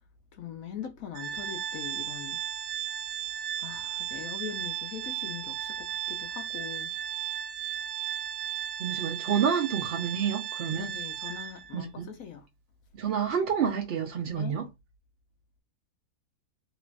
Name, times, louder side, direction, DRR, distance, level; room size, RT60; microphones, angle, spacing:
voice 1, 0.3-2.4 3.6-6.9 10.7-12.5 14.3-14.6, left 8 dB, 70° left, 1.0 m, -41 dB
Organ, 1.1-11.8, right 10 dB, 85° right, 1.1 m, -35 dB
voice 2, 8.8-10.9 11.7-12.1 12.9-14.6, right 7 dB, 65° right, 0.6 m, -29 dB
3.1 x 2.4 x 3.2 m
omnidirectional pair, 1.7 m